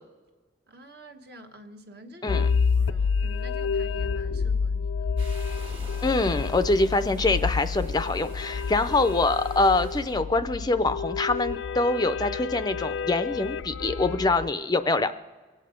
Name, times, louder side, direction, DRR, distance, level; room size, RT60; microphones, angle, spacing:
voice 1, 0.7-2.4 2.7-5.2, right 1 dB, 55° right, 1.3 m, -48 dB
sound 1, 2.3-14.5, left 5 dB, 85° left, 0.5 m, -29 dB
sound 2, 5.2-10.2, right 2 dB, 30° right, 1.7 m, -48 dB
voice 2, 6.0-15.1, left 2 dB, 20° left, 0.4 m, -24 dB
24.5 x 8.7 x 5.1 m
head